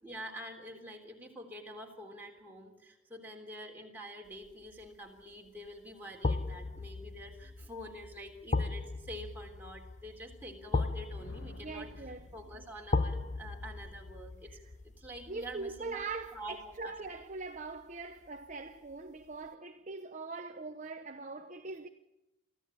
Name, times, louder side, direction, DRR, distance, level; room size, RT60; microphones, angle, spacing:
voice 1, 0.0-14.6 14.8-16.0 16.3-16.9, equal, 10° right, 3.4 m, -47 dB
Hollow Stone Step, 4.5-4.8 6.2-17.2 17.6-17.7, left 3 dB, 35° left, 0.7 m, -37 dB
sound 1, 11.2-13.1, left 1 dB, 50° left, 2.0 m, -55 dB
voice 2, 11.6-12.3 15.3-21.9, right 3 dB, 35° right, 0.8 m, -42 dB
24.0 x 15.0 x 8.8 m
head